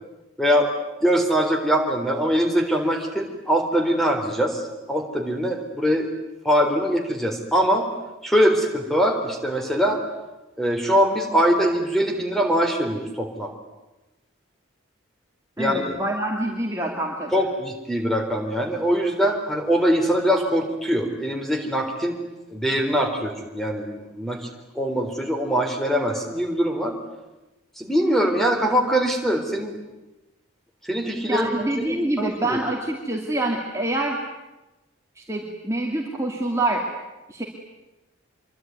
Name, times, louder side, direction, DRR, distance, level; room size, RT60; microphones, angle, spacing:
voice 1, 0.4-0.7 1.0-6.1 6.4-7.9 8.2-10.0 10.6-13.5 15.6-16.0 17.3-22.2 22.5-24.5 24.8-26.9 27.8-29.8 30.8-31.5 31.8-32.6, equal, ahead, 3 dB, 3.9 m, -22 dB
voice 2, 15.6-17.3 31.3-34.2 35.2-36.8 37.3-37.4, right 1 dB, 15° right, -1 dB, 2.6 m, -26 dB
26.0 x 24.0 x 9.6 m, 1.0 s
head